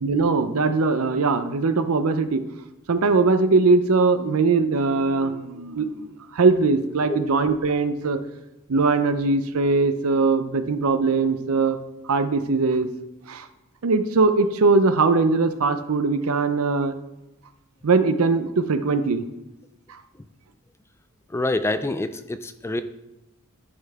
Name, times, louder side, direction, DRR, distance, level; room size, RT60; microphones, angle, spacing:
voice 1, 0.0-2.4 2.9-6.1 6.3-8.2 8.7-11.8 12.1-12.9 13.3-13.5 13.8-16.9 17.8-19.2, right 3 dB, 70° right, 10 dB, 0.6 m, -21 dB
voice 2, 21.3-22.8, left 2 dB, 10° left, 10 dB, 0.3 m, -26 dB
11.0 x 5.6 x 3.5 m, 0.93 s
head